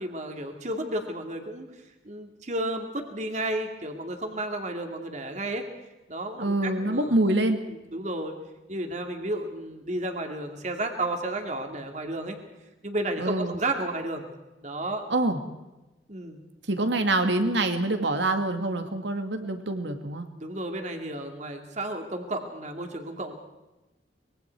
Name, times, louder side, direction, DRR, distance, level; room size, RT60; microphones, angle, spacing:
voice 1, 0.0-1.7 2.0-5.6 6.1-7.2 7.9-8.3 8.7-12.4 12.8-14.3 14.6-15.0 16.1-16.4 20.4-23.3, right 1 dB, 40° right, 4 dB, 2.5 m, -32 dB
voice 2, 6.4-7.6 13.2-13.6 15.1-15.4 16.7-20.3, right 2 dB, 75° right, 7 dB, 2.3 m, -25 dB
24.5 x 22.5 x 4.7 m, 1.1 s
head